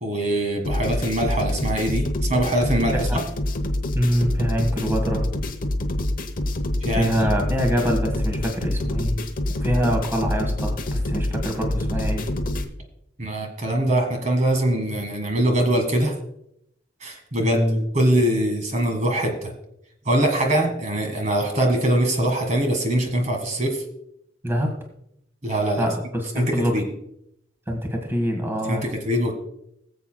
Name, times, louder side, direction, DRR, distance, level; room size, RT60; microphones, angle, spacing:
voice 1, 0.0-3.1 6.8-7.3 13.2-16.1 17.0-19.5 20.1-23.8 25.4-25.9 26.4-26.8 28.7-29.3, right 1 dB, 40° right, 3 dB, 1.6 m, -23 dB
sound 1, 0.6-12.6, left 1 dB, 45° left, 1.0 m, -26 dB
voice 2, 3.9-5.3 7.0-9.1 9.6-12.3 17.4-17.8 24.4-24.7 25.8-26.8 27.7-28.9, equal, 15° right, 2 dB, 1.5 m, -24 dB
21.0 x 7.6 x 2.2 m, 0.76 s
head